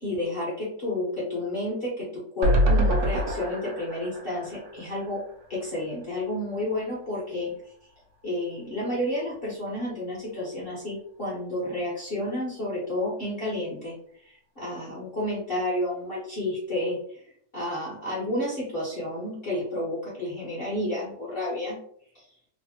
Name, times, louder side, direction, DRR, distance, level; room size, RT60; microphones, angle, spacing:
voice 1, 0.0-5.2 5.5-7.5 8.2-14.0 14.2-17.2 17.5-21.8 22.1-22.2, left 1 dB, 45° left, -6 dB, 0.8 m, -31 dB
sound 1, 2.4-5.7 6.0-6.1 6.4-6.5, equal, 70° right, 1.0 m, -26 dB
3.2 x 2.0 x 2.7 m, 0.62 s
omnidirectional pair, 1.9 m